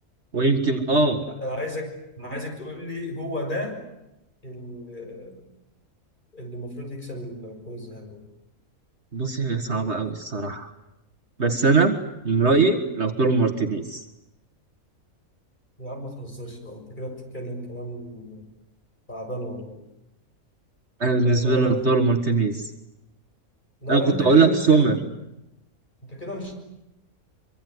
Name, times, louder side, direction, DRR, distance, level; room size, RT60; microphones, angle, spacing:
voice 1, 0.3-1.2 9.1-10.7 11.4-12.0 12.2-14.0 21.0-22.7 23.9-25.0, right 3 dB, 50° right, 6 dB, 2.0 m, -21 dB
voice 2, 1.2-1.9 2.2-3.8 4.4-5.4 6.3-8.2 15.8-18.5 19.1-19.8 21.2-21.9 23.8-25.0 26.0-26.5, equal, 30° left, 2 dB, 6.8 m, -33 dB
25.0 x 24.5 x 9.7 m, 0.90 s
omnidirectional pair, 1.5 m